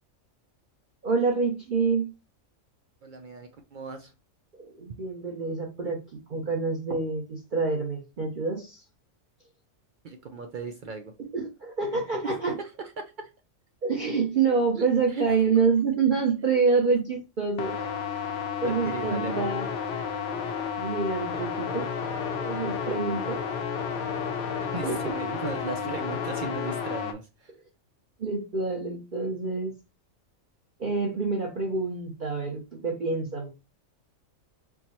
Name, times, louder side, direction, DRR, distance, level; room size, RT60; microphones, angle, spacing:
voice 1, 1.0-2.1 4.6-8.8 11.2-12.6 13.8-17.8 18.6-19.7 20.8-21.9 22.4-23.4 23.7-23.8 24.8-25.1 28.2-29.7 30.8-33.5, right 4 dB, 45° right, -1 dB, 0.8 m, -27 dB
voice 2, 3.0-4.1 10.0-11.1 12.8-13.3 14.8-14.9 15.1-15.2 18.6-19.3 24.6-27.5, right 4 dB, 75° right, 5 dB, 0.4 m, -37 dB
sound 1, 17.6-27.1, left 7 dB, 60° left, 0.8 m, -31 dB
4.5 x 2.0 x 4.1 m, 0.27 s
omnidirectional pair, 1.4 m